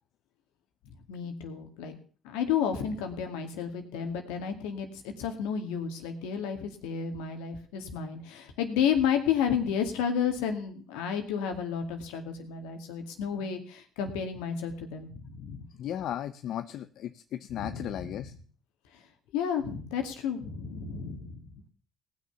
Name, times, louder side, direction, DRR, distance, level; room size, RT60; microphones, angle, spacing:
voice 1, 1.1-2.0 2.2-15.7 17.5-17.9 19.3-21.6, left 7 dB, 90° left, 5 dB, 2.1 m, -31 dB
voice 2, 15.8-18.3, left 10 dB, 70° left, 11 dB, 0.6 m, -35 dB
18.0 x 6.4 x 7.0 m, 0.43 s
supercardioid pair, 70°, 0 cm